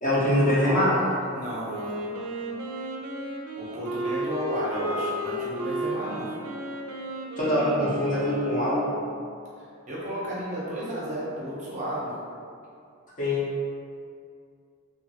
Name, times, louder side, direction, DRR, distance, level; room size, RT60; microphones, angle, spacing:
voice 1, 0.0-0.9 7.4-8.9 13.2-13.4, left 1 dB, 35° left, -8 dB, 0.7 m, -23 dB
voice 2, 0.6-1.9 2.5-2.6 3.6-6.3 9.9-12.1, right 1 dB, 35° right, -7 dB, 0.6 m, -33 dB
Wind instrument woodwind instrument, 1.6-9.4, right 1 dB, 85° right, 0.4 m, -33 dB
2.7 x 2.5 x 2.7 m, 2.4 s
head